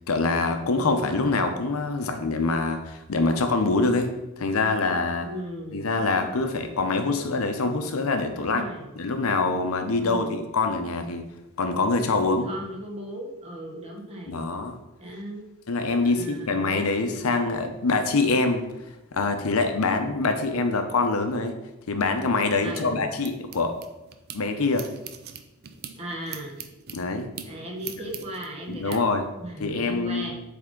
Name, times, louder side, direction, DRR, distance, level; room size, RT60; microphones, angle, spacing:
voice 1, 0.0-5.3 5.7-8.6 8.9-10.3 10.5-11.3 11.6-12.5 14.3-14.8 15.7-18.6 19.1-21.6 21.9-23.8 24.3-24.9 26.9-27.3 28.7-29.3 29.6-30.3, left 3 dB, 75° left, 7 dB, 0.7 m, -25 dB
voice 2, 5.2-5.8 8.3-8.9 10.0-10.5 12.4-14.5 15.0-15.4 16.0-16.8 22.6-23.1 26.0-26.5 27.4-29.0 29.4-30.3, right 1 dB, 30° right, -1 dB, 1.2 m, -37 dB
sound 1, 22.1-24.4 24.7-29.0, right 8 dB, 45° right, 0.5 m, -42 dB
7.8 x 3.5 x 3.7 m, 0.96 s
head